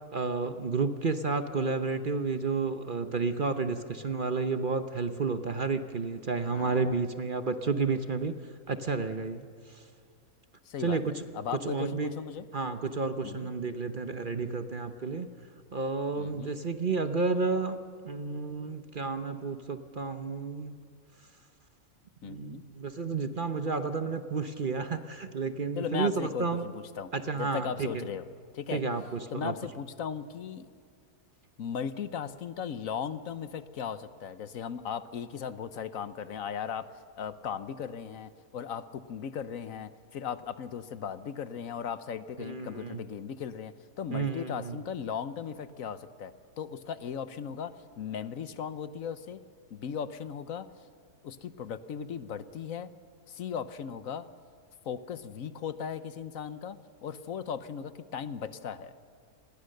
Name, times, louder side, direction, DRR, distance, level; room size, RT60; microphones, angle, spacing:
voice 1, 0.1-8.3 8.7-9.4 10.8-11.2 11.6-12.1 12.5-15.3 15.7-20.7 22.2-26.6 27.1-28.0 28.7-29.5 42.4-43.0 44.1-44.8, right 4 dB, 40° right, 9 dB, 0.9 m, -31 dB
voice 2, 6.5-7.0 10.7-11.0 11.3-12.5 13.2-13.5 16.2-16.5 22.2-22.6 25.8-28.3 28.5-28.8 29.3-30.7 31.6-36.9 37.2-49.4 49.7-50.9 51.2-52.9 53.3-54.3 54.8-58.9, left 7 dB, 70° left, 13 dB, 1.2 m, -37 dB
27.5 x 20.5 x 6.6 m, 2.3 s
omnidirectional pair, 1.5 m